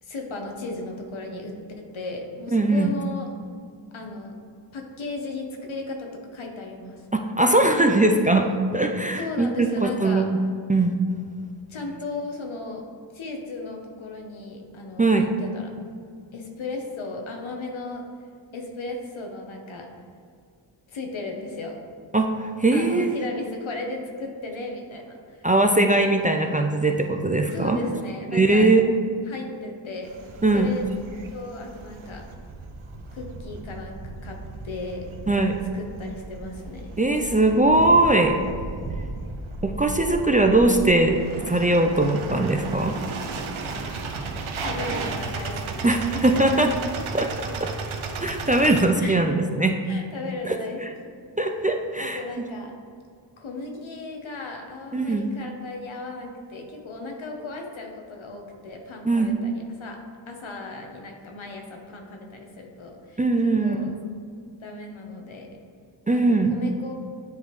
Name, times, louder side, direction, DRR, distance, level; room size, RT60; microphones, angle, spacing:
voice 1, 0.0-3.3 3.9-4.3 4.7-7.1 9.1-10.3 11.7-12.8 13.1-15.7 16.3-18.0 18.5-19.9 20.9-21.8 22.7-25.5 27.5-28.7 29.3-30.1 30.5-30.9 31.3-32.2 33.1-34.4 34.6-35.0 35.7-36.8 44.6-46.4 49.0-49.2 49.8-51.1 52.0-52.7 53.4-60.0 60.3-63.2 63.6-63.9 64.6-65.5 66.1-66.9, left 3 dB, 75° left, 2 dB, 1.0 m, -35 dB
voice 2, 2.5-2.9 7.1-10.3 10.7-10.9 15.0-15.3 22.1-23.2 25.4-27.8 28.3-28.9 30.4-30.7 35.3-35.7 37.0-38.4 39.6-42.9 45.8-46.7 47.1-47.7 48.2-49.8 50.4-50.9 51.4-52.2 54.9-55.3 59.0-59.3 63.2-63.8 66.1-66.6, right 2 dB, 20° right, 3 dB, 0.4 m, -20 dB
sound 1, 30.0-48.8, right 3 dB, 80° right, 0.7 m, -35 dB
9.5 x 3.4 x 3.1 m, 2.3 s
cardioid pair, 50°, 48 cm